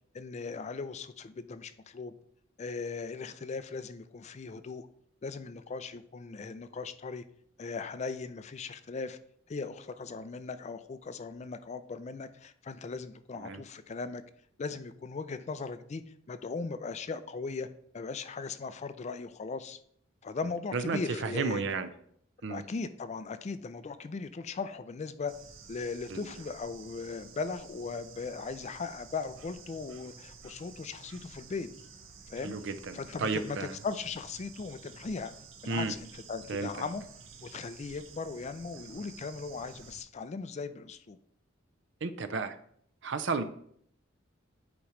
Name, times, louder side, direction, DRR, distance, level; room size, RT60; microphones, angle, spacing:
voice 1, 0.1-2.1 2.6-4.9 5.2-7.2 7.6-9.2 9.5-14.2 14.6-16.0 16.3-17.7 17.9-19.8 20.2-21.6 22.5-25.3 25.7-31.7 32.3-32.5 32.9-35.3 35.6-37.0 37.4-41.2, left 4 dB, 35° left, 12 dB, 0.4 m, -38 dB
voice 2, 20.7-21.9 22.4-22.6 26.1-26.2 32.4-33.7 35.7-35.9 36.5-36.7 42.0-42.6 43.0-43.4, right 4 dB, 65° right, 11 dB, 0.5 m, -32 dB
Bird / Insect, 25.3-40.0, right 5 dB, 85° right, 0.9 m, -51 dB
8.4 x 3.0 x 4.9 m, 0.65 s
head